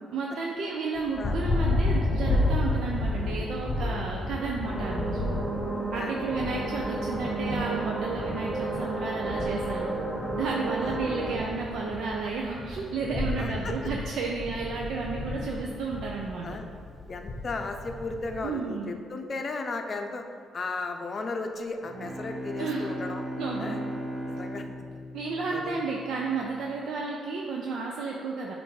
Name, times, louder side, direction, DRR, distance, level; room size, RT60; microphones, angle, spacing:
voice 1, 0.1-5.2 5.9-10.0 10.3-16.5 18.4-19.0 22.6-23.0 23.4-23.9 25.1-28.5, right 4 dB, 75° right, -1 dB, 0.5 m, -32 dB
Thunder, 1.0-18.5, left 2 dB, 25° left, 1.1 m, -32 dB
sound 1, 4.6-11.4, right 2 dB, 25° right, 1.2 m, -32 dB
voice 2, 13.4-13.8 16.4-16.7 17.1-20.2 20.5-23.2 23.6-23.8 24.3-24.6 25.5-25.8, left 3 dB, 40° left, 5 dB, 0.6 m, -35 dB
Bowed string instrument, 21.8-26.3, equal, ahead, 1.0 m, -37 dB
7.6 x 2.6 x 4.7 m, 2.2 s
cardioid pair, 90°, 0 cm